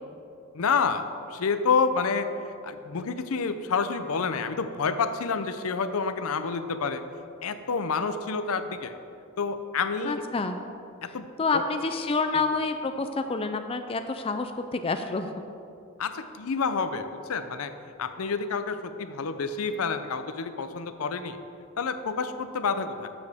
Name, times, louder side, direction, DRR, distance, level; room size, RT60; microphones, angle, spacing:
voice 1, 0.5-2.3 2.6-7.0 7.4-8.9 9.4-10.2 11.0-11.3 11.5-11.6 12.3-12.4 16.0-17.7 18.0-21.4 21.8-23.1, left 5 dB, 80° left, 10 dB, 0.5 m, -28 dB
voice 2, 10.0-10.6 11.4-15.3, left 3 dB, 25° left, 7 dB, 0.4 m, -28 dB
13.0 x 7.1 x 3.5 m, 2.6 s
head